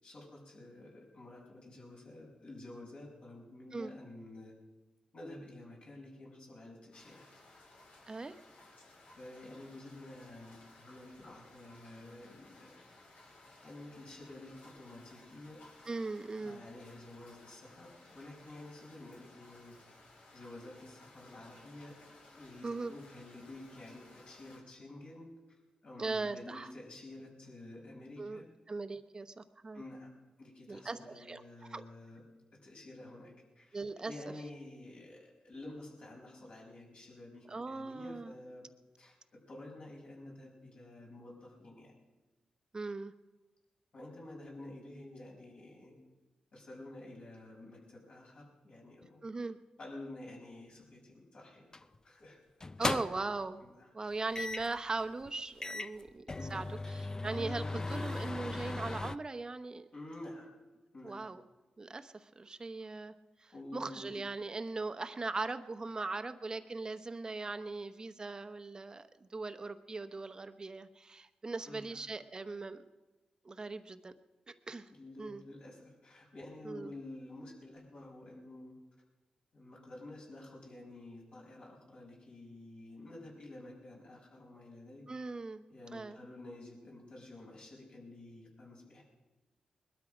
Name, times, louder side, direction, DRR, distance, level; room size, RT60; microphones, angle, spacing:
voice 1, 0.0-4.5 5.1-7.3 9.2-12.7 13.6-15.6 16.4-19.8 20.3-22.0 22.3-25.3 25.8-28.5 29.7-30.1 30.4-32.2 32.5-33.8 34.0-38.7 39.0-41.9 43.9-45.9 46.5-49.2 49.8-51.7 52.0-52.4 52.8-53.1 53.6-53.9 56.4-56.6 59.9-60.5 60.9-61.2 63.5-64.2 71.7-72.0 74.9-78.8 79.5-85.1 85.7-89.0, left 2 dB, 55° left, -2 dB, 5.7 m, -50 dB
sound 1, 6.9-24.6, left 2 dB, 80° left, 3.5 m, -59 dB
voice 2, 8.1-8.4 15.9-16.6 22.6-22.9 26.0-26.7 28.2-29.8 30.7-31.8 33.7-34.1 37.5-38.3 42.7-43.1 49.2-49.6 52.8-53.6 53.9-59.9 61.0-61.4 61.8-63.1 63.4-72.9 73.4-74.2 74.5-74.9 75.2-75.4 76.6-76.9 85.1-85.6 85.9-86.2, right 3 dB, 30° right, 10 dB, 0.9 m, -40 dB
sound 2, 51.7-52.0 52.6-53.4 54.3-54.8 55.3-55.4 55.6-59.1, left 2 dB, 25° left, 0.5 m, -37 dB
21.0 x 12.5 x 5.1 m, 1.2 s
cardioid pair, 75°, 2 cm